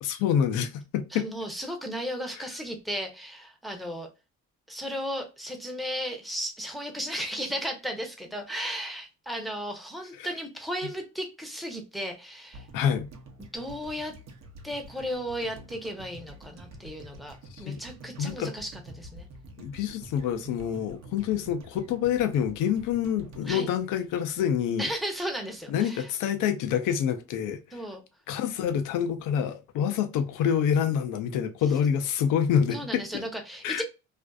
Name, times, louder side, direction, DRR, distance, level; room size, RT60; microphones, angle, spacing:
voice 1, 0.0-1.3 2.4-2.5 10.2-10.3 12.7-13.1 17.6-17.8 18.2-18.5 19.6-24.9 25.7-27.8 28.3-33.2 33.6-33.8, left 8 dB, 90° left, 0.5 m, -27 dB
voice 2, 1.1-4.1 4.7-12.6 13.5-14.1 14.6-19.3 23.5-23.7 24.8-26.1 27.7-28.0 32.7-33.8, equal, ahead, 0.7 m, -35 dB
sound 1, 12.5-24.7 25.0-25.1, right 1 dB, 60° right, 0.7 m, -48 dB
2.5 x 2.4 x 2.2 m
cardioid pair, 90°, 30 cm